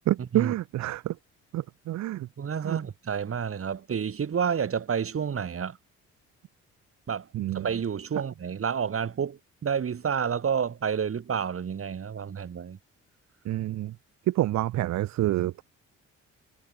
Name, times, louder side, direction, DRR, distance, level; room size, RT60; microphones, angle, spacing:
voice 1, 0.1-1.1 1.5-2.3 2.6-2.8 7.3-7.7 13.5-13.9 14.3-15.6, right 15 dB, 65° right, 0.6 m, -27 dB
voice 2, 2.4-5.8 7.1-7.3 7.5-12.8, right 7 dB, 45° right, 4.7 m, -29 dB
cardioid pair, 90°, 30 cm